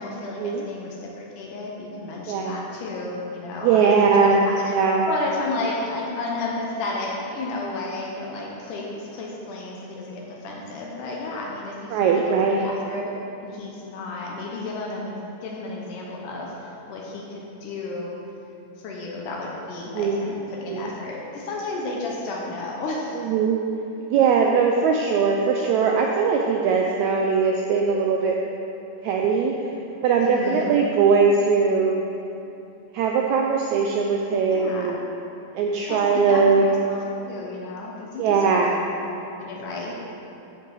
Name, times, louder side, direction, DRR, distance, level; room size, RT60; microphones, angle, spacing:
voice 1, 0.0-4.7 5.0-13.2 13.4-18.2 18.8-23.2 30.2-30.8 34.5-34.9 35.9-36.0 36.3-37.0 37.3-38.7 39.4-39.9, left 2 dB, 75° left, -2 dB, 2.3 m, -32 dB
voice 2, 3.6-4.4 4.7-5.1 11.9-12.7 19.9-20.3 20.7-20.9 23.2-23.6 24.1-28.4 29.0-29.7 30.0-32.0 32.9-35.0 35.5-36.7 38.2-38.8, right 5 dB, 90° right, 1 dB, 1.6 m, -20 dB
13.0 x 5.3 x 3.9 m, 2.9 s
omnidirectional pair, 3.8 m